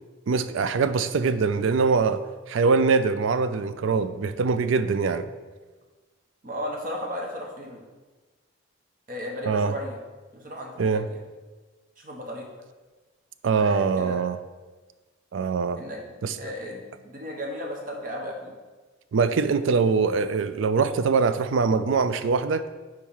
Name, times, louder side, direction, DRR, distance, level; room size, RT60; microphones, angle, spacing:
voice 1, 0.3-2.2 2.5-5.3 9.5-9.7 10.8-11.0 13.4-14.4 15.3-15.8 16.2-16.3 19.1-22.6, right 5 dB, 75° right, 12 dB, 0.4 m, -23 dB
voice 2, 6.4-7.8 9.1-10.0 10.3-11.2 12.0-12.5 13.6-14.2 15.8-18.5, equal, 40° right, 0 dB, 1.1 m, -35 dB
4.7 x 4.4 x 5.5 m, 1.3 s
head